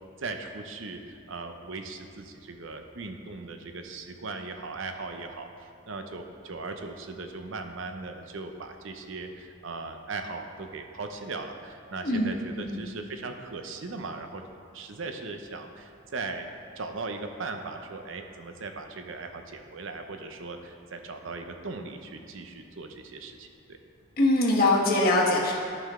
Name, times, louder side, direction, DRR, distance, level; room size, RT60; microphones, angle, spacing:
voice 1, 0.2-14.4 14.7-16.5 16.8-23.8, right 3 dB, 65° right, 6 dB, 0.7 m, -38 dB
voice 2, 12.0-12.8 24.2-25.5, left 2 dB, 45° left, -3 dB, 1.4 m, -23 dB
12.5 x 5.7 x 3.7 m, 2.4 s
head